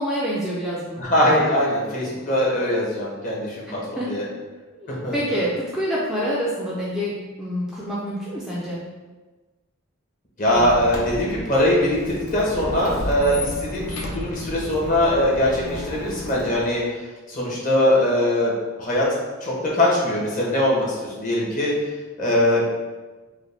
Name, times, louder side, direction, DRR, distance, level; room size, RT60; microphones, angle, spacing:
voice 1, 0.0-1.0 4.0-4.1 4.7-8.8, equal, ahead, -7 dB, 0.4 m, -27 dB
voice 2, 1.0-4.2 5.0-5.2 10.4-16.8 17.3-18.5 18.8-19.1 19.4-20.8 21.2-21.7 22.2-22.6, left 1 dB, 35° left, -5 dB, 1.0 m, -21 dB
Squeak, 10.4-16.8, left 1 dB, 70° left, 0.7 m, -33 dB
4.8 x 2.1 x 3.3 m, 1.3 s
head